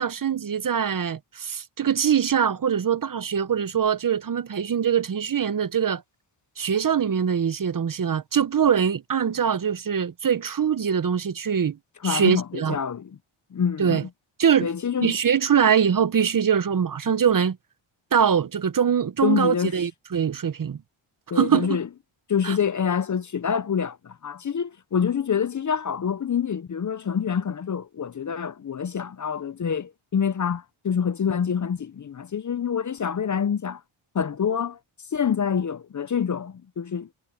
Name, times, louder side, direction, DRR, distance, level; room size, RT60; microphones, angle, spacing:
voice 1, 0.0-6.0 6.6-11.8 12.0-12.8 13.8-14.0 14.4-14.7 15.0-17.6 18.1-20.8 21.3-21.8 22.4-22.6, right 7 dB, 40° right, 0.9 m, -23 dB
voice 2, 12.0-13.2 13.5-14.1 14.6-15.2 19.2-19.8 21.3-21.9 22.3-33.8 34.1-34.8 35.1-37.1, left 7 dB, 35° left, 0.7 m, -26 dB
cardioid pair, 75°, 49 cm